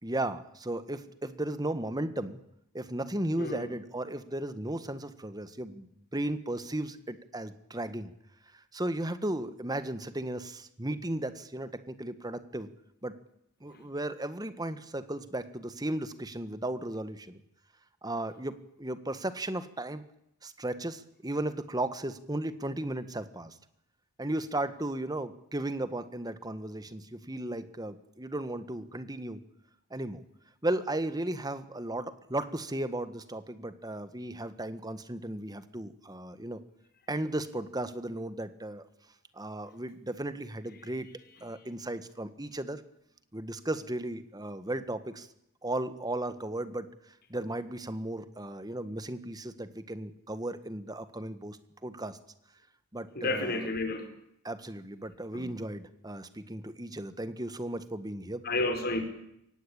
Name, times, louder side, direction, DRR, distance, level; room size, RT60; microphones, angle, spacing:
voice 1, 0.0-2.4 2.7-8.1 8.5-12.7 13.0-13.2 13.6-17.4 18.0-20.0 20.4-23.6 24.2-29.4 29.9-30.2 30.6-36.6 37.1-38.9 39.3-41.1 41.4-42.8 43.3-45.3 45.6-52.2 52.9-53.7 54.4-58.4, right 1 dB, 15° right, 12 dB, 1.6 m, -35 dB
voice 2, 3.4-3.7 13.7-13.8 53.1-54.1 55.3-55.5 58.4-59.0, left 2 dB, 45° left, 6 dB, 5.1 m, -31 dB
24.0 x 18.5 x 8.9 m, 0.77 s
head